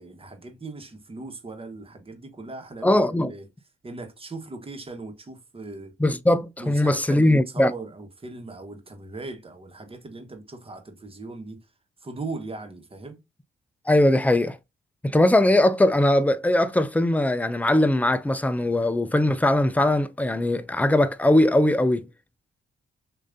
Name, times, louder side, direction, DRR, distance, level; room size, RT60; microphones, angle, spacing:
voice 1, 0.0-3.5 3.8-5.9 6.6-11.7 12.0-13.2, right 3 dB, 25° right, 1.2 m, -39 dB
voice 2, 2.8-3.3 6.0-7.7 13.9-14.6 15.0-22.1, left 1 dB, 5° left, 0.4 m, -20 dB
6.7 x 2.6 x 2.6 m
cardioid pair, 105°, 21 cm